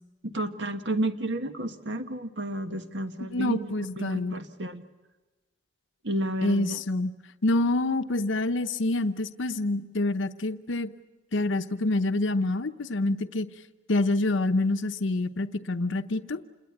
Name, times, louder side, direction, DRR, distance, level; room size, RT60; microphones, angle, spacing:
voice 1, 0.2-3.7 4.0-4.8 6.0-6.8, right 1 dB, 70° right, 8 dB, 1.5 m, -31 dB
voice 2, 3.3-4.4 6.4-7.1 7.4-10.9 11.3-13.5 13.9-16.4, left 2 dB, 80° left, 9 dB, 0.9 m, -27 dB
27.5 x 21.5 x 8.6 m, 1.2 s
head